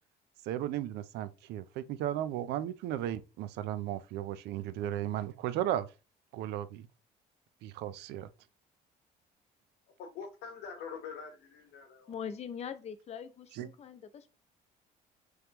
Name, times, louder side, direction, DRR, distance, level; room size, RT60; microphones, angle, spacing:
voice 1, 0.4-5.9 6.3-6.9 7.6-8.3 13.5-13.7, right 12 dB, 80° right, 0.4 m, -35 dB
voice 2, 10.0-12.2, left 6 dB, 80° left, 0.9 m, -44 dB
voice 3, 12.1-14.3, left 7 dB, 40° left, 0.6 m, -42 dB
3.4 x 3.1 x 2.8 m
cardioid pair, 110°, 17 cm